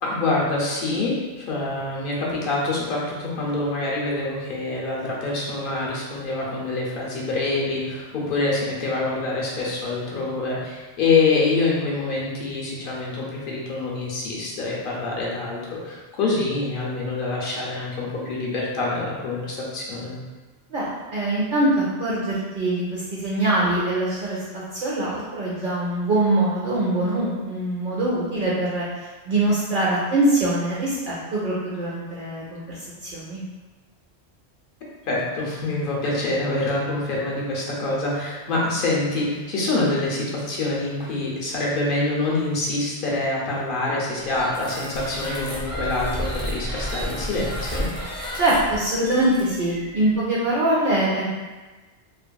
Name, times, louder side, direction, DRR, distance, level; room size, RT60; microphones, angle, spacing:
voice 1, 0.0-20.2 35.0-47.9, left 2 dB, 55° left, -4 dB, 0.7 m, -25 dB
voice 2, 20.7-33.4 48.3-51.3, right 1 dB, 60° right, -6 dB, 0.6 m, -23 dB
sound 1, 44.3-50.2, equal, 15° right, 0.7 m, -32 dB
2.8 x 2.4 x 2.2 m, 1.2 s
omnidirectional pair, 1.2 m